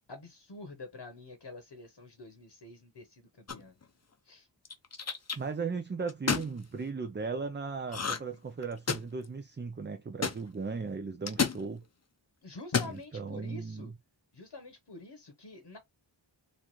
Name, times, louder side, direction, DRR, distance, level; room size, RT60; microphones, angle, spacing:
voice 1, 0.1-3.8 4.2-4.5 12.4-13.9 14.3-15.8, left 2 dB, 60° left, 1.0 m, -47 dB
sound 1, 3.5-3.8 4.6-5.4 6.1-6.5 7.9-8.4 8.6-9.2 10.2-10.4 11.3-11.6 12.6-13.0, left 5 dB, 35° left, 0.6 m, -30 dB
voice 2, 5.3-11.8 12.8-13.9, right 4 dB, 25° right, 0.4 m, -37 dB
4.0 x 2.5 x 3.0 m
wide cardioid pair, 55°, 49 cm